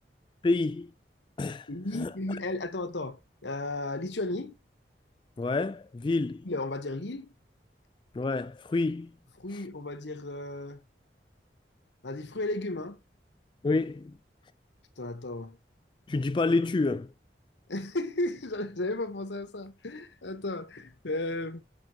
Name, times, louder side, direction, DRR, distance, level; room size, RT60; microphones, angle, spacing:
voice 1, 0.4-0.9 1.4-1.7 1.9-2.1 5.4-6.4 8.1-9.1 13.6-14.1 16.1-17.1, left 3 dB, 25° left, 0.3 m, -28 dB
voice 2, 1.7-4.6 6.4-7.3 9.4-10.8 12.0-13.0 15.0-15.6 17.7-21.6, left 2 dB, 85° left, 1.2 m, -34 dB
8.1 x 6.5 x 2.9 m
head